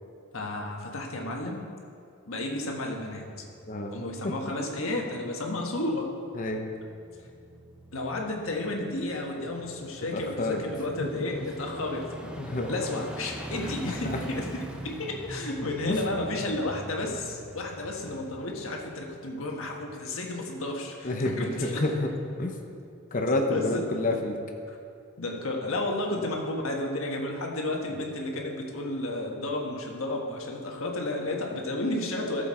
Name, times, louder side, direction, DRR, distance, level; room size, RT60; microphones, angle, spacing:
voice 1, 0.3-1.6 2.2-3.4 3.9-6.1 7.9-12.3 12.7-21.8 23.5-23.9 24.7-24.8 25.2-32.5, left 2 dB, 75° left, 1 dB, 1.5 m, -32 dB
sound 1, 3.4-19.6 20.0-20.1, right 1 dB, 5° right, 0.8 m, -44 dB
voice 2, 3.7-4.3 6.3-6.7 10.1-10.6 11.0-11.1 11.4-11.5 12.4-12.8 13.6-14.2 15.9-16.0 21.0-22.1 22.4-22.6 23.1-24.4 26.2-26.3 27.9-28.0, left 2 dB, 40° left, 3 dB, 0.9 m, -29 dB
14.0 x 7.1 x 4.4 m, 2.6 s
head